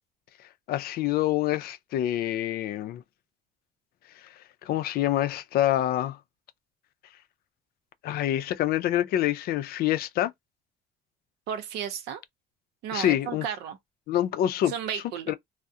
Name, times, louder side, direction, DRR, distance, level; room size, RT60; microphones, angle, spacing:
voice 1, 0.7-3.0 4.6-6.2 8.0-10.3 12.9-13.4 14.1-15.3, left 12 dB, 65° left, 0.4 m, -26 dB
voice 2, 11.5-12.2 12.8-13.8 14.7-15.3, right 8 dB, 85° right, 0.6 m, -33 dB
2.3 x 2.0 x 2.6 m
cardioid pair, 110°, 17 cm